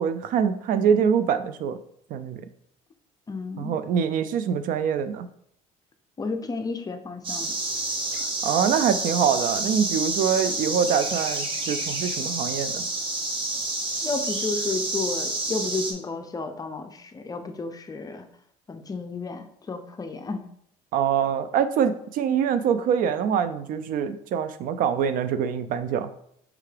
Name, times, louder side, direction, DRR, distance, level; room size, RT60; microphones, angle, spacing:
voice 1, 0.0-1.8 2.1-2.4 3.6-5.3 8.1-12.9 20.9-26.1, right 7 dB, 60° right, 11 dB, 0.4 m, -24 dB
voice 2, 3.3-3.8 6.2-7.5 14.0-18.2 18.7-20.4, left 3 dB, 25° left, 6 dB, 0.5 m, -32 dB
sound 1, 7.2-15.9, right 2 dB, 30° right, 1.0 m, -29 dB
4.8 x 3.3 x 3.3 m, 0.68 s
cardioid pair, 105°, 16 cm